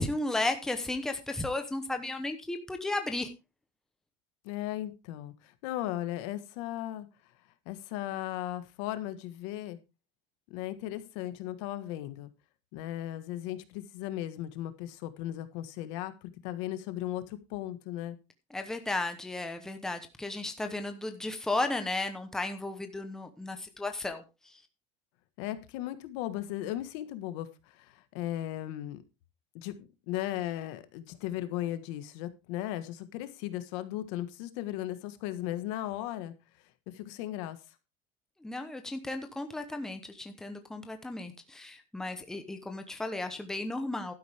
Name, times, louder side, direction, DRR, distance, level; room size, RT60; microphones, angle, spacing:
voice 1, 0.0-3.3 18.5-24.6 38.4-44.1, left 2 dB, 5° left, 6 dB, 0.9 m, -34 dB
voice 2, 4.4-7.1 7.6-9.8 10.5-12.3 12.7-18.2 25.4-29.0 29.5-29.7 30.1-36.3 36.9-37.6, left 13 dB, 70° left, 11 dB, 1.6 m, -36 dB
12.0 x 10.5 x 3.5 m, 0.27 s
cardioid pair, 180°, 16 cm